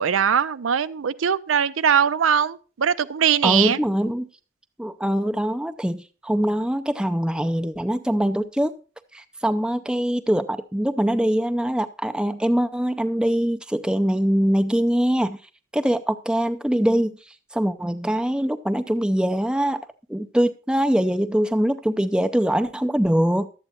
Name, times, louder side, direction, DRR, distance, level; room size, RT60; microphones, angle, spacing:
voice 1, 0.0-3.8, right 8 dB, 85° right, 0.5 m, -21 dB
voice 2, 3.4-4.3 4.8-8.7 9.1-15.4 15.7-19.8 20.1-23.5, equal, 5° right, 0.4 m, -23 dB
12.0 x 8.1 x 4.3 m
head